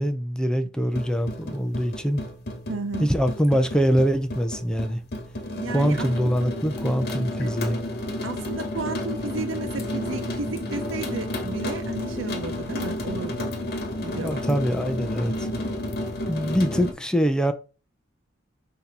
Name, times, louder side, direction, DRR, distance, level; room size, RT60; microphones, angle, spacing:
voice 1, 0.0-2.2 3.0-5.0 5.7-7.8 14.2-15.5 16.3-17.5, equal, 5° left, 0.5 m, -24 dB
sound 1, 0.9-16.9, left 1 dB, 55° left, 1.2 m, -31 dB
voice 2, 2.7-3.1 5.5-6.4 8.2-13.6 14.0-14.5, right 3 dB, 85° right, 0.8 m, -33 dB
6.3 x 2.9 x 5.3 m
head